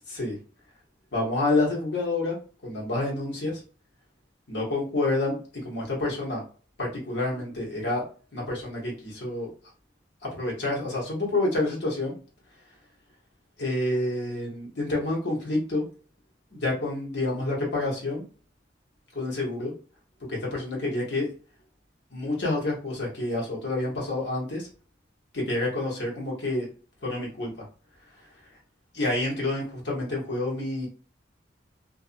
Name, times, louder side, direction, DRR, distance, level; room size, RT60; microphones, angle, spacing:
voice 1, 1.1-2.4 2.6-3.6 4.5-5.4 5.6-6.4 6.8-8.0 8.3-9.5 10.2-12.1 13.6-15.9 16.5-18.2 19.1-19.7 20.3-21.3 22.1-24.7 25.3-26.7 27.0-27.5 28.9-30.9, left 2 dB, 70° left, -3 dB, 1.1 m, -28 dB
2.6 x 2.3 x 2.5 m, 0.38 s
head